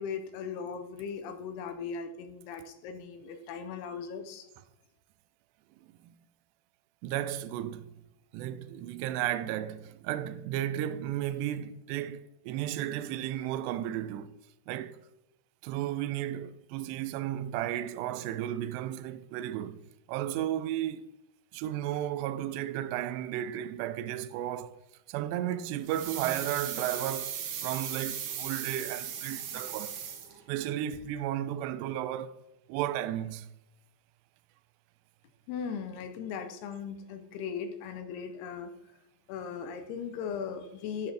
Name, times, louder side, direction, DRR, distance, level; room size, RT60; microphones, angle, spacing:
voice 1, 0.0-4.5 35.5-38.7 39.3-41.1, left 6 dB, 80° left, 2.6 m, -38 dB
voice 2, 7.0-8.0 8.3-14.4 14.7-15.0 15.6-19.8 20.1-21.1 21.5-24.8 25.1-30.0 30.5-32.4 32.7-33.5, right 12 dB, 85° right, 2.6 m, -34 dB
sound 1, 25.9-30.7 30.9-31.0, right 8 dB, 70° right, 2.4 m, -37 dB
10.5 x 7.3 x 3.4 m
omnidirectional pair, 5.0 m